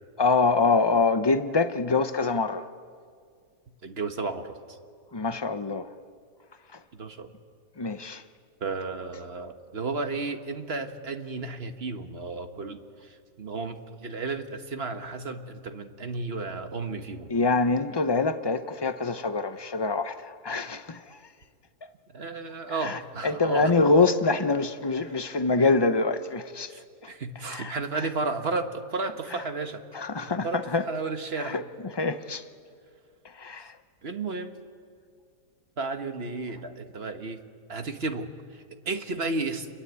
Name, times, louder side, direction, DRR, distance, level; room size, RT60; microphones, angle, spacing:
voice 1, 0.2-2.7 5.1-5.8 7.8-8.2 17.3-21.0 22.8-26.7 27.5-27.7 29.9-30.8 31.4-31.6 32.0-32.4 33.4-33.7, left 3 dB, 40° left, 0.3 m, -25 dB
voice 2, 3.8-4.6 7.0-7.3 8.6-17.3 22.1-23.7 25.1-25.2 25.6-25.7 26.7-29.8 30.3-31.6 34.0-34.6 35.8-37.4 37.7-39.7, right 3 dB, 40° right, 1.4 m, -33 dB
29.0 x 22.0 x 8.3 m
omnidirectional pair, 1.7 m